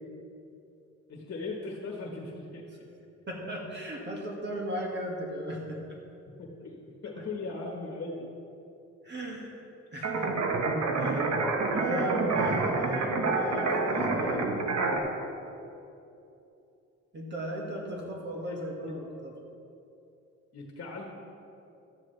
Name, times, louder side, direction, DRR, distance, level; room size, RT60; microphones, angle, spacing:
voice 1, 1.1-2.6 6.4-6.7 7.0-8.3 18.4-18.6 20.5-21.1, left 3 dB, 45° left, 0 dB, 1.5 m, -38 dB
voice 2, 3.3-5.6 5.9-6.0 7.2-7.3 9.0-9.6 9.9-10.4 11.0-11.3 11.7-14.5 17.1-19.3, equal, 35° right, -1 dB, 1.8 m, -36 dB
sound 1, 10.0-15.0, right 3 dB, 60° right, 1.3 m, -28 dB
12.5 x 9.9 x 3.3 m, 2.8 s
cardioid pair, 90°, 30 cm